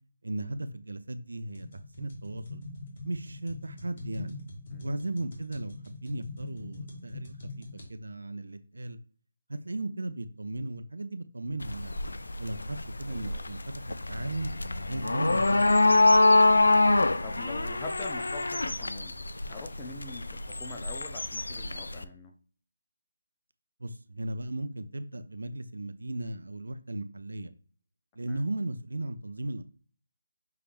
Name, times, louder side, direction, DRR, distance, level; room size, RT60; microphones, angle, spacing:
voice 1, 0.2-1.7 2.0-2.6 3.0-4.4 4.8-9.0 9.5-12.0 12.4-14.5 14.9-15.8 23.8-27.5 28.2-29.6, right 2 dB, 80° right, 11 dB, 0.5 m, -36 dB
sound 1, 1.6-7.9, left 2 dB, 45° left, 1.4 m, -43 dB
sound 2, 11.6-22.0, left 2 dB, 80° left, 0.3 m, -25 dB
voice 2, 13.1-13.4 16.8-19.2 19.5-22.3 28.3-28.4, left 3 dB, 20° left, 3 dB, 0.6 m, -43 dB
5.6 x 3.4 x 2.6 m, 0.41 s
figure-of-eight pair, 160°, 0 cm